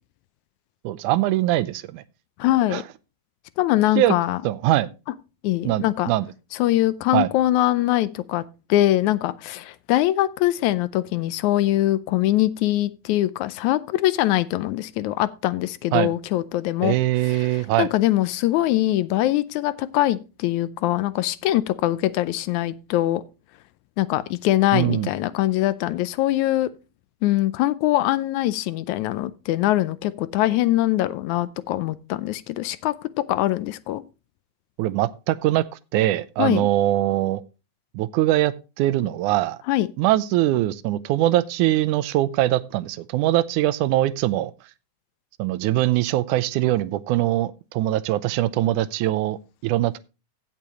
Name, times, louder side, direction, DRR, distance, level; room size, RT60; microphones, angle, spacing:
voice 1, 0.8-2.0 2.7-2.8 4.0-4.1 4.4-4.9 5.6-6.3 7.1-7.3 15.9-16.1 16.8-17.9 24.7-25.1 34.8-35.6 35.9-37.4 37.9-39.6 40.0-44.5 45.4-50.0, right 15 dB, 85° right, 2.1 m, -22 dB
voice 2, 2.4-2.8 3.6-4.4 5.4-6.1 6.5-8.4 8.7-17.0 17.3-23.2 24.0-26.7 27.2-32.9 33.3-34.0 36.4-36.7 39.7-39.9, left 15 dB, 80° left, 1.9 m, -22 dB
16.0 x 6.9 x 3.0 m
omnidirectional pair, 3.5 m